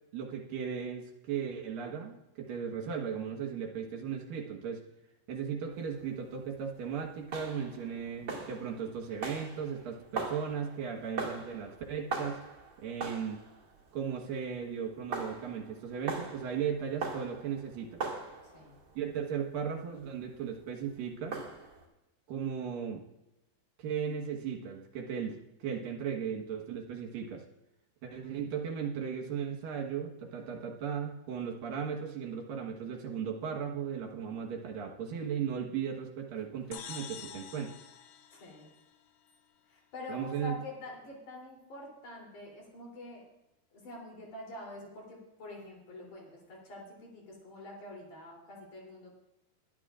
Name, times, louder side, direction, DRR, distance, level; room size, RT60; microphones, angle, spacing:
voice 1, 0.1-4.8 5.3-12.4 12.8-13.4 13.9-18.1 19.0-21.4 22.3-23.0 23.8-27.4 28.0-37.7 40.1-40.5, right 7 dB, 70° right, 0 dB, 3.0 m, -36 dB
sound 1, 5.7-21.9, right 4 dB, 35° right, 2.2 m, -42 dB
voice 2, 18.4-18.8 38.3-38.7 39.7-43.2 43.7-49.1, left 2 dB, 55° left, -2 dB, 4.8 m, -46 dB
sound 2, 36.7-39.3, left 8 dB, 70° left, 2.5 m, -47 dB
22.0 x 11.5 x 2.5 m, 0.91 s
omnidirectional pair, 4.5 m